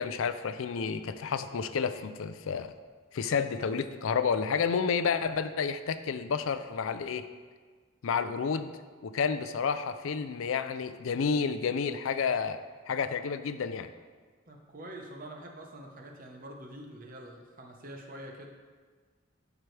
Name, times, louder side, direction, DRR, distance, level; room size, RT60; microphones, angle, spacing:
voice 1, 0.0-2.7 3.1-7.3 8.0-8.7 9.0-12.6 12.9-13.9, left 6 dB, 70° left, 11 dB, 0.4 m, -30 dB
voice 2, 14.5-18.5, right 1 dB, 40° right, 1 dB, 0.9 m, -45 dB
12.0 x 4.8 x 3.3 m, 1.5 s
head